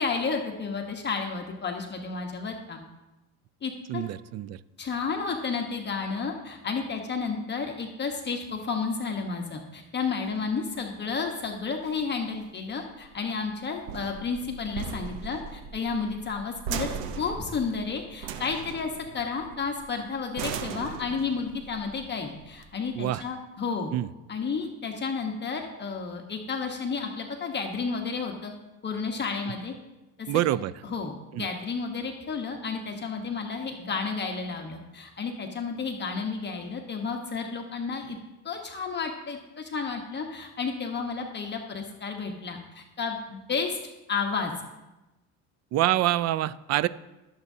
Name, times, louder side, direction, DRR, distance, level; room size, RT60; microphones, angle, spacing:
voice 1, 0.0-2.8 3.6-4.0 4.8-16.9 17.2-23.9 24.3-28.5 28.8-29.7 30.2-30.4 30.8-38.2 38.4-43.8 44.1-44.5, left 5 dB, 35° left, 2 dB, 1.1 m, -32 dB
voice 2, 3.9-4.6 22.9-23.2 23.9-24.1 30.3-30.7 31.3-31.5 45.7-46.9, right 14 dB, 55° right, 18 dB, 0.5 m, -26 dB
sound 1, 10.3-23.3, right 7 dB, 90° right, 0.9 m, -39 dB
17.5 x 7.3 x 2.7 m, 1.0 s
cardioid pair, 100°, 32 cm